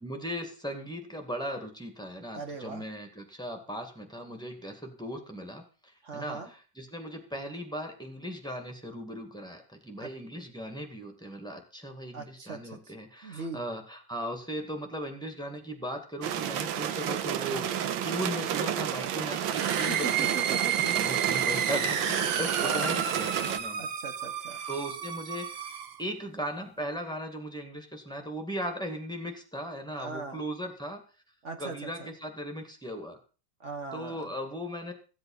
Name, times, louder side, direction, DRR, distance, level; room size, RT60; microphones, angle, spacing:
voice 1, 0.0-23.9 24.7-25.5 26.0-31.0 31.6-33.2 33.9-34.9, equal, ahead, 4 dB, 2.0 m, -38 dB
voice 2, 2.3-2.8 6.0-6.5 10.0-10.1 12.1-12.9 13.2-13.6 19.9-20.9 22.6-23.0 23.8-24.6 30.0-30.4 31.4-32.1 33.6-34.3, right 4 dB, 40° right, 6 dB, 1.8 m, -39 dB
sound 1, 16.2-23.6, right 10 dB, 80° right, 1.6 m, -31 dB
sound 2, 19.4-26.0, right 8 dB, 60° right, 0.6 m, -31 dB
15.0 x 7.9 x 5.6 m, 0.37 s
omnidirectional pair, 2.0 m